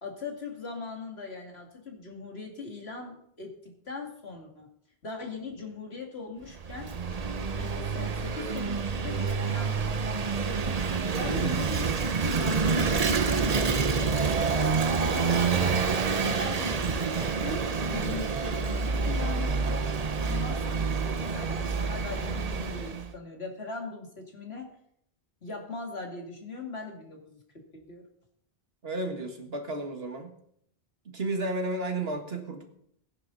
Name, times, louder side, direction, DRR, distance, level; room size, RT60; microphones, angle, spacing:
voice 1, 0.0-4.7 5.0-6.9 7.5-10.2 10.5-13.7 15.0-15.9 16.2-19.9 20.2-24.7 25.4-27.4 27.7-28.1, left 4 dB, 75° left, 1 dB, 2.9 m, -40 dB
Vehicle / Engine, 6.5-23.1, right 5 dB, 40° right, 0.8 m, -28 dB
sound 1, 11.7-17.3, left 1 dB, ahead, 4.4 m, -41 dB
voice 2, 28.8-30.4 31.1-32.7, right 2 dB, 70° right, 4 dB, 2.1 m, -32 dB
18.5 x 10.5 x 4.1 m, 0.70 s
omnidirectional pair, 1.1 m